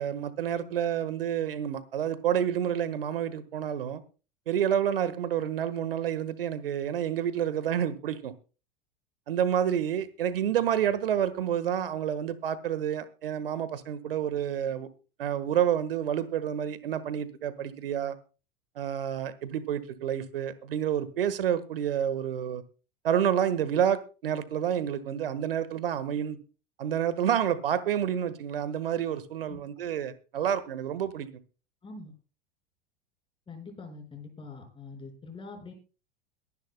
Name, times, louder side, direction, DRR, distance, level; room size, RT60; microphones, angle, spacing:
voice 1, 0.0-4.0 4.5-8.3 9.3-14.9 15.2-18.1 18.7-22.6 23.0-26.4 26.8-31.3, right 9 dB, 70° right, 1.5 m, -29 dB
voice 2, 31.8-32.1 33.5-35.7, left 3 dB, 15° left, 5.4 m, -44 dB
22.5 x 11.0 x 2.2 m
figure-of-eight pair, 90°, 29 cm